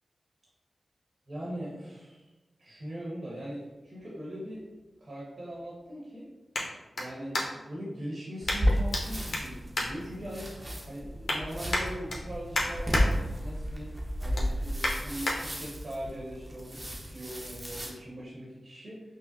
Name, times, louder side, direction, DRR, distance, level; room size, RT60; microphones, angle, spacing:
voice 1, 1.3-2.3 2.6-4.7 5.0-6.3 7.0-10.5 10.8-13.9 14.2-19.0, equal, 70° right, -6 dB, 1.0 m, -40 dB
sound 1, 3.8-7.8 8.4-9.0 9.3-10.6 11.0-11.4 11.7-13.0 13.5-13.7 14.1-15.4 15.9-16.0, left 1 dB, 80° left, 0.7 m, -34 dB
sound 2, 8.4-17.9, equal, 30° right, 0.7 m, -33 dB
5.4 x 2.0 x 2.6 m, 1.1 s
cardioid pair, 50°, 0 cm